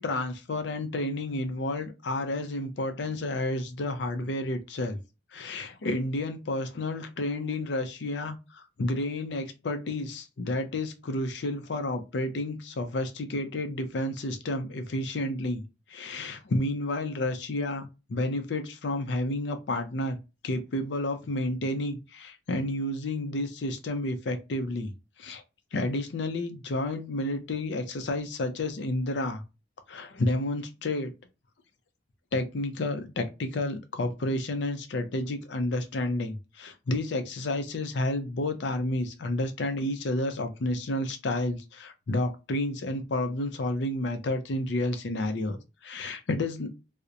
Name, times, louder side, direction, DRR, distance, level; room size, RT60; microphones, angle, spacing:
voice 1, 0.0-5.0 5.3-15.6 15.9-20.2 20.4-24.9 25.2-25.4 25.7-29.4 29.9-31.1 32.3-45.6 45.8-46.7, left 1 dB, 70° left, 0.5 m, -30 dB
2.8 x 2.0 x 2.3 m
head